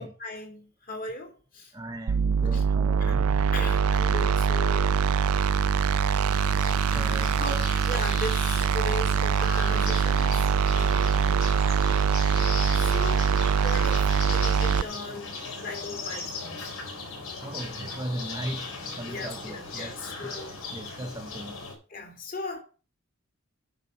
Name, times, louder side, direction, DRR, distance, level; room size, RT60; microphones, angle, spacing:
voice 1, 0.0-1.7 2.4-2.6 3.1-3.2 3.5-5.0 7.4-7.5 7.9-11.5 12.7-16.7 19.1-20.6 21.9-22.6, left 2 dB, 40° left, 2.5 m, -38 dB
voice 2, 1.7-3.4 6.9-7.4 17.4-21.6, right 1 dB, 15° right, 0.8 m, -38 dB
sound 1, 2.1-14.8, right 6 dB, 80° right, 0.4 m, -23 dB
sound 2, 6.3-21.7, left 4 dB, 75° left, 4.1 m, -38 dB
9.6 x 5.2 x 6.5 m
head